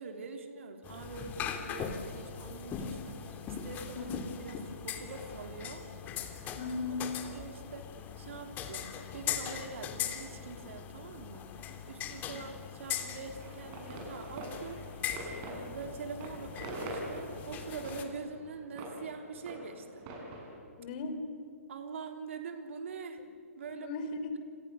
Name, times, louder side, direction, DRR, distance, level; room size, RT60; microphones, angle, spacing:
voice 1, 0.0-5.9 6.2-6.7 7.3-7.9 8.2-14.8 15.3-20.1 21.7-23.2 23.6-23.9 24.3-24.4, right 4 dB, 60° right, 5 dB, 3.8 m, -44 dB
sound 1, 0.8-18.0, left 8 dB, 20° left, 2.7 m, -40 dB
voice 2, 6.6-7.1 12.3-12.4 20.8-21.2 23.2-23.3 23.7-24.4, left 3 dB, 40° left, 8 dB, 3.6 m, -37 dB
sound 2, 13.4-20.6, right 1 dB, 35° right, 7.5 m, -44 dB
29.5 x 27.0 x 6.8 m, 2.3 s
figure-of-eight pair, 125°, 8 cm